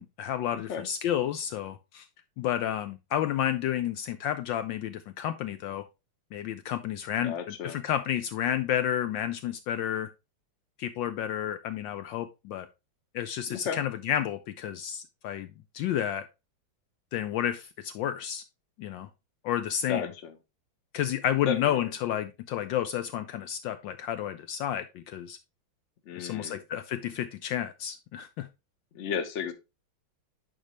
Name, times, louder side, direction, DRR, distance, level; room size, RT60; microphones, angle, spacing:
voice 1, 0.0-2.1 2.4-5.8 6.3-10.1 10.8-12.7 13.1-16.3 17.1-18.4 18.8-19.1 19.4-20.0 20.9-25.4 26.2-28.5, left 10 dB, 75° left, 1.2 m, -31 dB
voice 2, 0.5-0.9 7.2-7.8 13.5-13.8 19.9-20.3 21.4-21.9 26.1-26.6 28.9-29.5, left 6 dB, 45° left, 1.1 m, -33 dB
11.0 x 4.4 x 3.1 m
omnidirectional pair, 2.2 m